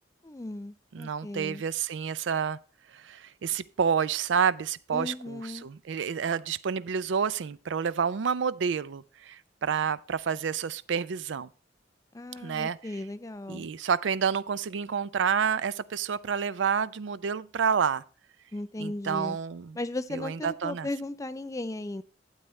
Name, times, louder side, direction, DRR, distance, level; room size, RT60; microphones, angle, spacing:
voice 1, 0.2-1.6 4.9-5.7 12.1-13.7 18.5-19.4 19.8-22.0, left 2 dB, 15° left, 0.5 m, -36 dB
voice 2, 0.9-2.6 2.9-11.5 12.4-12.8 13.5-18.0 18.8-19.8 20.1-20.9, right 7 dB, 80° right, 0.4 m, -29 dB
12.0 x 8.2 x 3.2 m
head